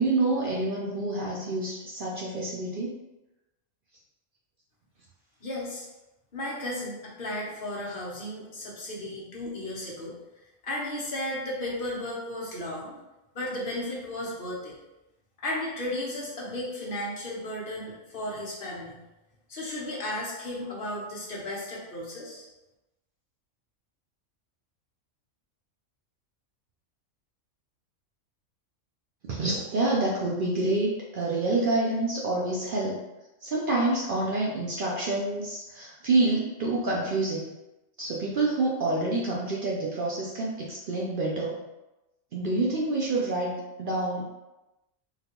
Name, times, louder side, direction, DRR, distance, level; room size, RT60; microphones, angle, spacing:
voice 1, 0.0-3.0 29.3-33.0 33.4-37.5 38.0-41.6 42.3-44.3, right 2 dB, 65° right, -3 dB, 0.5 m, -27 dB
voice 2, 5.4-5.8 6.3-10.2 10.6-13.0 13.3-14.7 15.4-19.0 19.5-22.4, left 1 dB, 45° left, -5 dB, 1.0 m, -34 dB
3.8 x 2.3 x 2.9 m, 0.99 s
omnidirectional pair, 1.4 m